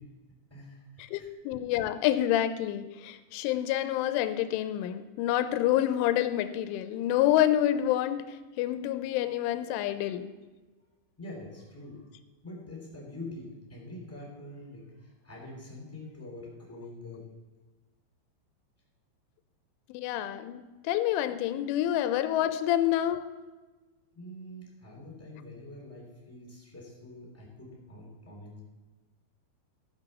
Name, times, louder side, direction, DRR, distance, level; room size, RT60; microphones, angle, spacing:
voice 1, 0.5-1.3 11.2-12.1 12.4-17.3 24.1-28.6, left 1 dB, 5° left, -3 dB, 2.2 m, -45 dB
voice 2, 1.1-10.3 19.9-23.3, left 12 dB, 90° left, 10 dB, 3.1 m, -28 dB
14.5 x 6.2 x 6.6 m, 1.2 s
omnidirectional pair, 5.5 m